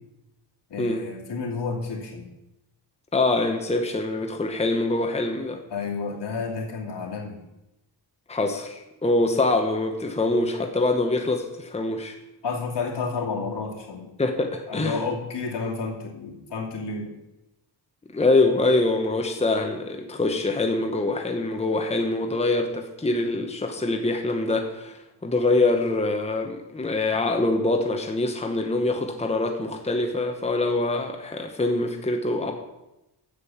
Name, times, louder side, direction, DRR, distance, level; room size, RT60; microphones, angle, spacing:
voice 1, 0.7-2.3 5.7-7.4 12.4-14.1 14.7-17.1, left 4 dB, 75° left, -1 dB, 2.6 m, -31 dB
voice 2, 3.1-5.6 8.3-12.2 14.2-15.0 18.1-32.5, left 2 dB, 15° left, 4 dB, 1.0 m, -24 dB
8.4 x 7.6 x 7.1 m, 0.94 s
wide cardioid pair, 130°, 42 cm